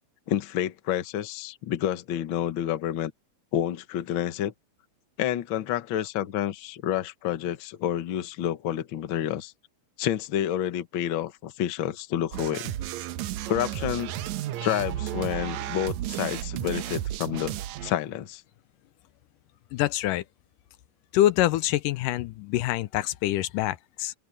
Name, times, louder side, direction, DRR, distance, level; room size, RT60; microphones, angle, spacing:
voice 1, 0.3-3.1 3.5-4.5 5.2-9.5 10.0-12.7 13.5-14.1 14.6-17.6 17.8-18.4, left 11 dB, 60° left, 1.4 m, -29 dB
sound 1, 12.3-17.9, right 13 dB, 75° right, 1.9 m, -33 dB
voice 2, 19.7-20.2 21.1-24.1, left 14 dB, 90° left, 2.3 m, -25 dB
open air
omnidirectional pair, 3.7 m